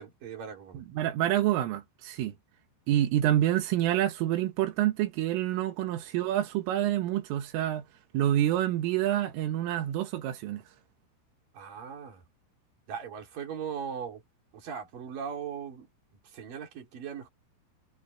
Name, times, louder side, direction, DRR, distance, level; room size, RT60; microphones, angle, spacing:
voice 1, 0.0-0.8 11.5-12.2 12.9-14.2 14.5-15.9 16.3-17.3, right 7 dB, 45° right, 5.2 m, -39 dB
voice 2, 0.7-2.3 2.9-7.9 8.1-10.6, right 12 dB, 85° right, 4.2 m, -27 dB
omnidirectional pair, 5.7 m